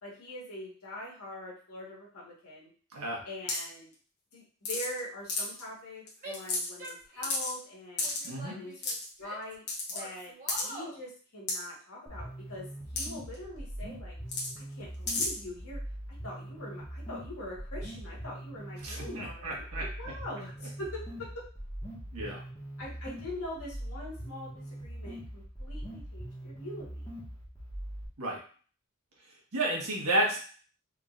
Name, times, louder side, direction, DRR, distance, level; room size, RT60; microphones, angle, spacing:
voice 1, 0.0-2.7 3.2-3.9 4.3-8.1 8.5-8.8 9.2-12.7 12.9-14.2 14.6-15.8 16.2-21.5 22.8-27.1, left 1 dB, 75° left, -5 dB, 1.6 m, -43 dB
sound 1, 3.5-3.7 4.6-5.0 5.3-5.6 6.1-6.2 6.3-6.9 7.2-7.5 8.0-8.3 8.8-9.0 9.7-10.0 10.5-10.6 11.5-11.6 13.0-13.1 13.3-13.4 14.3-14.5 15.1-15.3, left 3 dB, 50° left, 1.2 m, -31 dB
Female speech woman speaking / Yell, 6.2-7.5 8.0-9.5 9.9-11.0, right 1 dB, 35° right, 1.2 m, -45 dB
voice 2, 8.2-8.6 18.8-19.8 22.1-22.4 28.2-28.4 29.5-30.4, right 1 dB, 80° right, -3 dB, 1.4 m, -31 dB
sound 2, 12.1-28.1, equal, 15° left, 1.4 m, -42 dB
3.7 x 3.7 x 2.5 m, 0.42 s
head